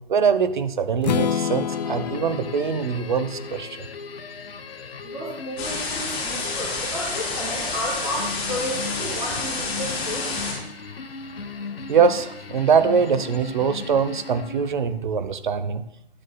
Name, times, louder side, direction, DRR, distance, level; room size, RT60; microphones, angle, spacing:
voice 1, 0.1-3.9 11.9-15.8, right 6 dB, 50° right, 12 dB, 0.8 m, -22 dB
Strum, 1.0-5.0, left 8 dB, 45° left, 0.4 m, -29 dB
sound 1, 1.7-14.9, left 4 dB, 70° left, 0.9 m, -37 dB
voice 2, 5.0-10.3, equal, 10° right, -6 dB, 1.8 m, -32 dB
sound 2, 5.6-10.5, left 3 dB, 20° left, 3.5 m, -29 dB
13.5 x 10.0 x 2.2 m, 0.76 s
figure-of-eight pair, 130°, 30 cm